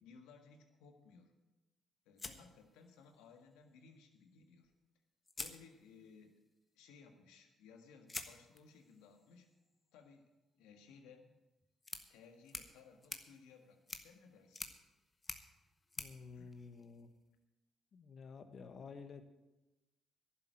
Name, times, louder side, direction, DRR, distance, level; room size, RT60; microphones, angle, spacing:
voice 1, 0.0-1.3 2.1-4.7 5.4-6.4 6.8-9.5 9.9-10.3 10.6-11.3 12.1-14.7 16.1-16.5, left 5 dB, 85° left, 6 dB, 1.6 m, -60 dB
sound 1, 2.2-3.3 4.6-4.7 5.2-6.3 8.1-17.3, left 3 dB, 25° left, 1.4 m, -51 dB
voice 2, 16.0-17.1 17.9-19.2, left 5 dB, 55° left, 9 dB, 1.4 m, -51 dB
11.0 x 7.4 x 9.1 m, 1.0 s
supercardioid pair, 60°, 0 cm